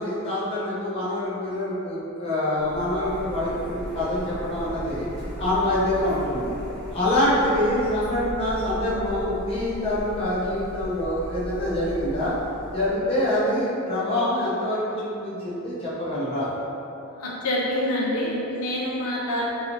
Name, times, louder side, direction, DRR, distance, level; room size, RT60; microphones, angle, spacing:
voice 1, 0.0-5.1 5.4-6.5 6.9-12.3 12.7-16.5, left 1 dB, 25° left, -10 dB, 0.8 m, -25 dB
Printer, 2.6-12.9, equal, 5° left, 0.5 m, -37 dB
voice 2, 17.1-19.5, left 1 dB, 85° left, -5 dB, 0.6 m, -26 dB
3.9 x 3.0 x 2.8 m, 2.9 s
head